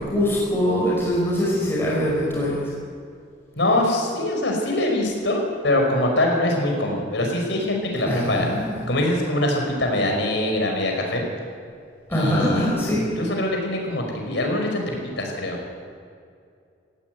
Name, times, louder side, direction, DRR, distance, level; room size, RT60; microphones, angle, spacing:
voice 1, 0.0-2.6 8.1-8.8 12.1-13.1, equal, 10° left, -7 dB, 5.4 m, -23 dB
voice 2, 3.6-8.5 8.9-11.2 12.1-15.6, left 1 dB, 65° left, 1 dB, 5.6 m, -23 dB
18.0 x 16.5 x 9.4 m, 2.3 s
head